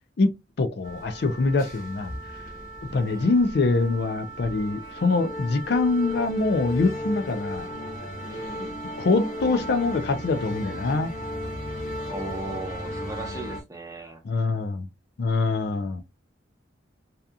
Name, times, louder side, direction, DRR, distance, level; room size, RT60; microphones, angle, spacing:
voice 1, 0.6-2.1 2.9-7.7 9.0-11.1 14.2-14.9 15.2-16.0, left 3 dB, 60° left, 0.4 m, -24 dB
sound 1, 0.8-13.6, equal, 45° left, 0.9 m, -35 dB
voice 2, 2.9-3.4 8.2-8.8 12.1-14.2, right 2 dB, 20° right, 0.7 m, -37 dB
2.7 x 2.4 x 2.3 m
head